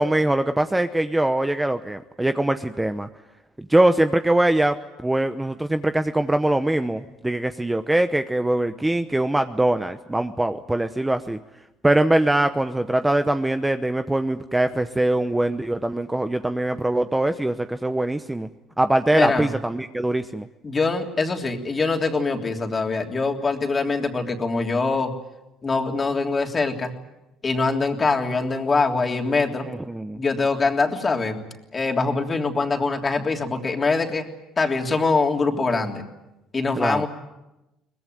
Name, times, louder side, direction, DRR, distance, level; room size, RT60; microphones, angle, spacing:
voice 1, 0.0-3.1 3.6-4.8 5.0-11.4 11.8-18.5 18.8-20.5 29.7-30.2 36.7-37.1, right 1 dB, 10° right, 9 dB, 0.9 m, -22 dB
voice 2, 19.1-19.5 20.6-25.1 25.6-26.9 27.4-29.6 30.1-31.4 31.7-34.2 34.6-36.0 36.5-37.1, left 3 dB, 25° left, 3 dB, 3.2 m, -23 dB
23.0 x 20.5 x 9.3 m, 0.96 s
cardioid pair, 105°, 0 cm